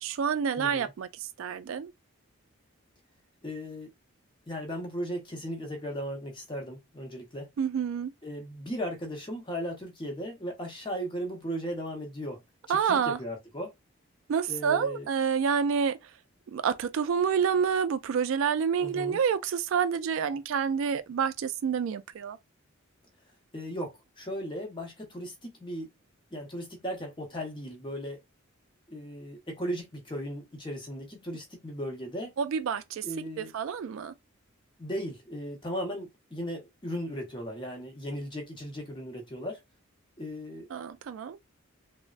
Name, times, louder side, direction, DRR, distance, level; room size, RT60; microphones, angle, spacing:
voice 1, 0.0-1.9 7.6-8.1 12.7-13.2 14.3-16.2 16.5-22.4 32.4-33.1 33.4-34.1 40.7-41.4, right 7 dB, 65° right, 0.3 m, -28 dB
voice 2, 0.6-0.9 3.4-3.9 4.5-7.5 8.2-12.4 12.7-13.7 14.5-15.1 18.8-19.2 23.5-25.9 26.3-28.2 28.9-32.3 33.0-33.5 34.8-39.6 40.2-40.7, equal, 20° left, 0.8 m, -37 dB
3.2 x 2.1 x 2.4 m
head